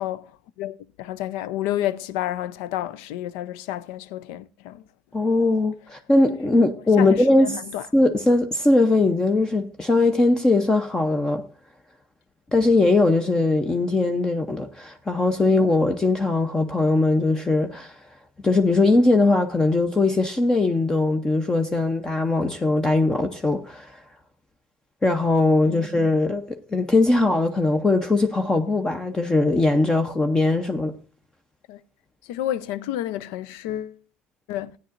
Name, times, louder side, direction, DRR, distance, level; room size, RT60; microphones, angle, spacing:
voice 1, 0.0-4.8 7.0-7.9 15.4-15.5 25.7-25.9 31.7-31.8 32.2-34.0 34.5-34.8, left 12 dB, 80° left, 0.4 m, -30 dB
voice 2, 5.1-7.6 7.9-11.4 12.5-17.9 18.4-23.9 25.0-30.9, left 2 dB, 15° left, 0.7 m, -20 dB
15.0 x 9.3 x 2.5 m
supercardioid pair, 100°, 4 cm